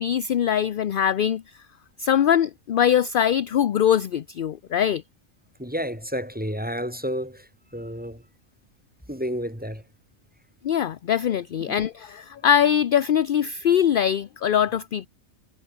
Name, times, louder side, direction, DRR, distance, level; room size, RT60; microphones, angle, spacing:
voice 1, 0.0-1.4 2.0-5.0 10.6-15.1, left 9 dB, 55° left, 0.6 m, -22 dB
voice 2, 5.6-8.2 9.1-9.8 11.7-11.8, equal, 5° right, 8.0 m, -31 dB
omnidirectional pair, 1.4 m